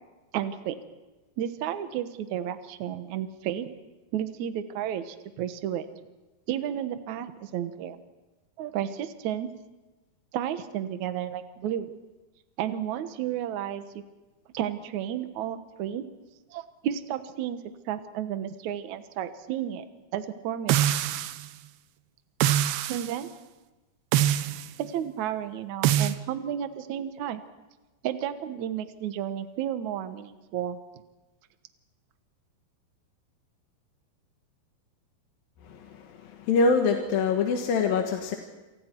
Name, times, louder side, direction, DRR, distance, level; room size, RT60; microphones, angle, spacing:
voice 1, 0.3-0.8 1.4-3.7 4.1-5.9 6.5-8.0 8.6-9.5 10.3-11.9 12.6-14.0 14.5-16.0 16.5-17.6 17.9-19.8 20.1-20.9 22.9-23.3 24.8-27.4 28.0-30.8, right 10 dB, 60° right, 9 dB, 2.2 m, -32 dB
sound 1, 20.7-21.5 22.4-23.1 24.1-24.7 25.8-26.2, right 11 dB, 85° right, 2.8 m, -24 dB
voice 2, 35.6-38.4, left 4 dB, 70° left, 3 dB, 3.1 m, -25 dB
28.0 x 27.5 x 4.6 m, 1.1 s
omnidirectional pair, 4.5 m